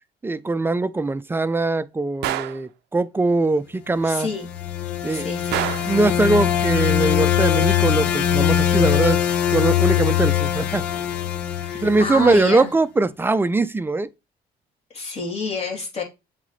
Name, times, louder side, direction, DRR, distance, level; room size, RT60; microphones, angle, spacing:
voice 1, 0.2-4.3 5.0-5.3 5.8-9.2 9.5-10.9 11.7-14.1, right 2 dB, 15° right, 0.5 m, -21 dB
Gunshot gunfire, 2.2-2.6 5.5-6.0, right 14 dB, 80° right, 0.5 m, -26 dB
voice 2, 4.0-4.5 5.1-5.7 11.5-12.7 14.9-16.0, left 4 dB, 35° left, 3.1 m, -29 dB
sound 1, 4.2-12.4, left 11 dB, 90° left, 0.9 m, -22 dB
7.8 x 3.7 x 3.2 m
cardioid pair, 110°, 17 cm